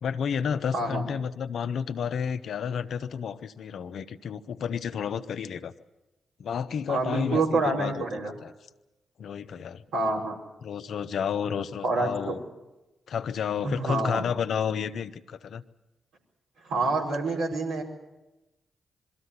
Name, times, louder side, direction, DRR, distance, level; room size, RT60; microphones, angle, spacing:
voice 1, 0.0-5.7 6.4-8.0 8.4-8.5 9.2-9.8 10.6-12.4 13.1-15.6, left 7 dB, 70° left, 10 dB, 0.9 m, -31 dB
voice 2, 0.7-1.1 6.9-8.3 9.9-10.4 11.8-12.3 13.6-14.2 16.6-17.8, right 3 dB, 85° right, -2 dB, 4.7 m, -27 dB
22.5 x 14.0 x 9.7 m, 1.0 s
supercardioid pair, 45°, 0 cm